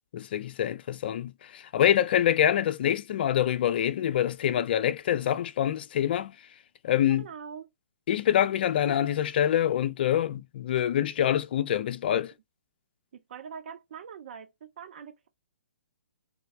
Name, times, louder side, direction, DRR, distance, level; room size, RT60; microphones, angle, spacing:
voice 1, 0.1-6.4 6.8-7.2 8.1-12.3, left 10 dB, 50° left, 0.4 m, -25 dB
voice 2, 7.1-7.7 13.1-15.3, right 7 dB, 55° right, 0.6 m, -43 dB
3.2 x 2.1 x 3.3 m
hypercardioid pair, 145°, 7 cm